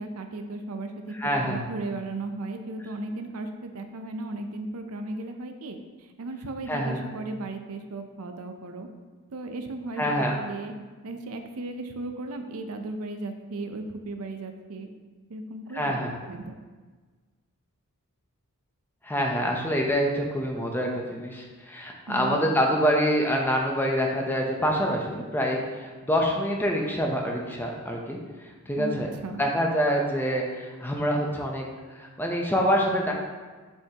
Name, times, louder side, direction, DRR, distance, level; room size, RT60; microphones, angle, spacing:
voice 1, 0.0-8.9 9.3-10.7 11.0-14.9 15.3-16.0 16.3-16.6 22.1-22.5 28.8-29.5, right 2 dB, 80° right, 6 dB, 0.6 m, -36 dB
voice 2, 1.2-1.6 6.7-7.0 10.0-10.4 15.7-16.1 19.0-28.2 28.7-29.1 29.4-31.6 31.9-33.1, equal, 10° left, 0 dB, 0.7 m, -26 dB
7.1 x 5.6 x 2.9 m, 1.4 s
head